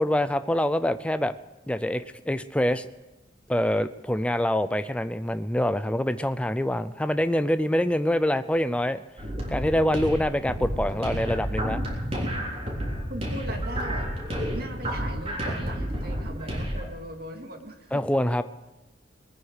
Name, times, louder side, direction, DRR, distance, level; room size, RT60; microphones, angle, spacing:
voice 1, 0.0-1.3 1.7-2.9 3.5-9.0 9.5-11.8 17.9-18.4, left 1 dB, 5° left, 11 dB, 0.5 m, -25 dB
sound 1, 9.2-16.9, equal, 35° right, 3.7 m, -30 dB
voice 2, 13.1-14.1 14.5-18.0, right 1 dB, 55° right, 4 dB, 2.3 m, -39 dB
21.0 x 9.6 x 6.5 m, 1.1 s
head